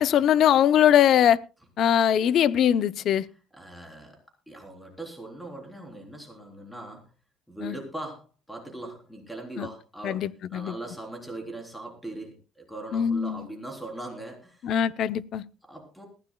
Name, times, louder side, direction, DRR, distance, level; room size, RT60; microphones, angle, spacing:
voice 1, 0.0-1.4 1.8-3.3 7.6-7.8 9.6-9.7 10.0-10.7 12.9-13.5 14.6-15.4, left 10 dB, 50° left, 17 dB, 0.6 m, -21 dB
voice 2, 3.5-4.2 4.5-7.0 7.5-14.8 15.6-16.1, right 2 dB, ahead, 0 dB, 3.7 m, -40 dB
21.0 x 15.0 x 2.3 m, 0.31 s
cardioid pair, 170°, 0 cm